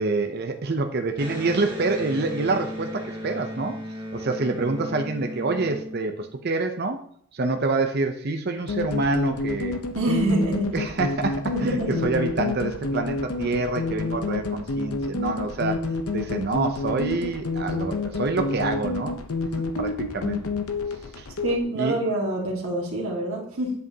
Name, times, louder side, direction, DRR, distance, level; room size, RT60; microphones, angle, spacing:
voice 1, 0.0-3.7 4.1-7.0 7.3-9.8 10.7-15.8 16.1-19.1 19.8-20.4 21.2-21.3 21.8-21.9, right 3 dB, 45° right, 5 dB, 0.6 m, -26 dB
Electric guitar, 1.1-6.6, equal, 20° right, 1.8 m, -36 dB
sound 1, 8.7-21.6, left 3 dB, 75° left, 0.7 m, -29 dB
voice 2, 10.0-10.7 11.5-12.0 21.4-23.7, right 2 dB, 70° right, -3 dB, 1.9 m, -26 dB
7.9 x 7.5 x 2.8 m, 0.63 s
head